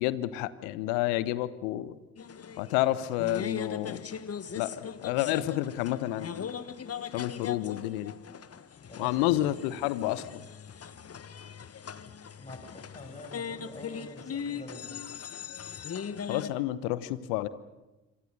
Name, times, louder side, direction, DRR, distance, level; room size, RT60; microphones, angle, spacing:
voice 1, 0.0-2.0 2.6-4.0 4.6-6.5 7.1-8.1 9.0-10.5 16.3-17.5, left 15 dB, 75° left, 16 dB, 1.1 m, -30 dB
sound 1, 2.2-16.5, left 7 dB, 40° left, 1.4 m, -40 dB
voice 2, 8.9-9.4 12.4-15.0, left 2 dB, 20° left, 5 dB, 7.1 m, -46 dB
27.0 x 24.5 x 6.7 m, 1.1 s
figure-of-eight pair, 40°, 38 cm